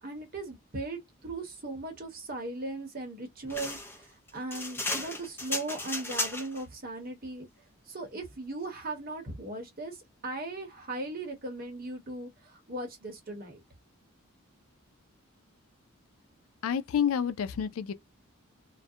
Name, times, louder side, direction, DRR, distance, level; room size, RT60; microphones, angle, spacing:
voice 1, 0.0-7.5 7.9-13.6, right 2 dB, 40° right, 0.9 m, -38 dB
sound 1, 3.5-6.6, left 2 dB, 10° left, 0.6 m, -34 dB
voice 2, 16.6-17.9, left 8 dB, 75° left, 0.3 m, -29 dB
2.4 x 2.1 x 2.6 m
head